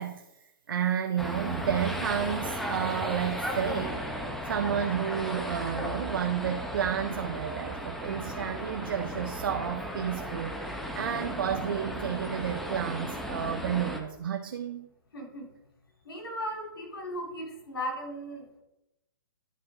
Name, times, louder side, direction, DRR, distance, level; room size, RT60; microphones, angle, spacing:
voice 1, 0.0-4.1 4.4-14.9, right 8 dB, 70° right, 6 dB, 0.6 m, -31 dB
sound 1, 1.2-14.0, equal, ahead, 0.8 m, -35 dB
voice 2, 15.1-15.5 16.0-18.6, equal, 80° left, 0 dB, 3.1 m, -37 dB
10.0 x 4.3 x 4.8 m, 0.92 s
hypercardioid pair, 140°, 12 cm